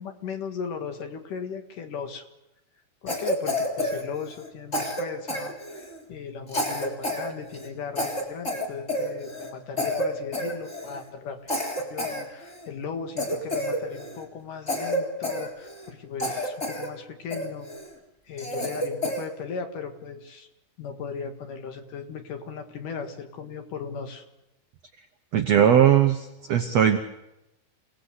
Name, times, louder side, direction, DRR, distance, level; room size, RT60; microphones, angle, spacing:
voice 1, 0.0-2.3 3.0-17.7 18.3-20.5 20.8-24.2, left 6 dB, 60° left, 6 dB, 3.1 m, -37 dB
Cough, 3.1-4.5 4.7-6.0 6.5-7.3 7.5-7.7 8.0-9.5 9.8-10.1 10.3-11.0 11.5-12.7 13.2-14.2 14.7-15.9 16.2-16.9 17.3-17.9 18.4-19.3, equal, 15° left, 3.8 m, -29 dB
voice 2, 25.3-27.0, right 9 dB, 75° right, 6 dB, 1.5 m, -19 dB
28.5 x 18.5 x 8.1 m, 0.91 s
omnidirectional pair, 4.6 m